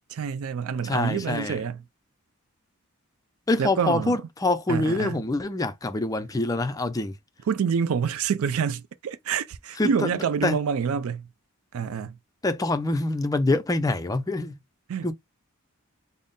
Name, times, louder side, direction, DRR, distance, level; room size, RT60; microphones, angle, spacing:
voice 1, 0.1-1.8 3.6-4.2 4.7-5.2 7.5-11.3 11.7-12.2 14.9-15.1, right 6 dB, 70° right, 0.4 m, -27 dB
voice 2, 0.8-1.6 3.5-7.1 9.8-9.9 10.4-10.6 12.4-14.6 15.0-15.1, left 2 dB, 15° left, 0.4 m, -25 dB
3.5 x 2.0 x 3.8 m
head